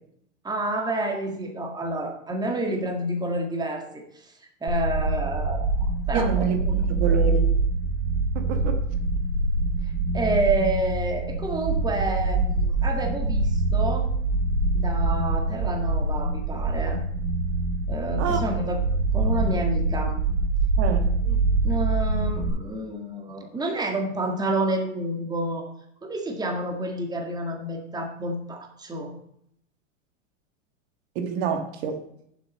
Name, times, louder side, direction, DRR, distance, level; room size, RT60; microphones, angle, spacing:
voice 1, 0.4-4.3 4.6-6.8 9.8-14.1 14.7-17.0 17.9-18.8 19.1-20.2 21.2-21.4 21.6-25.7 26.0-29.1, right 1 dB, 10° right, 3 dB, 1.7 m, -29 dB
sound 1, 4.7-22.5, right 3 dB, 80° right, 4.5 m, -24 dB
voice 2, 6.1-7.6 8.3-8.8 18.2-18.4 20.8-21.1 31.1-32.0, right 6 dB, 55° right, 6 dB, 1.7 m, -27 dB
9.8 x 7.5 x 5.3 m, 0.72 s
supercardioid pair, 125°, 38 cm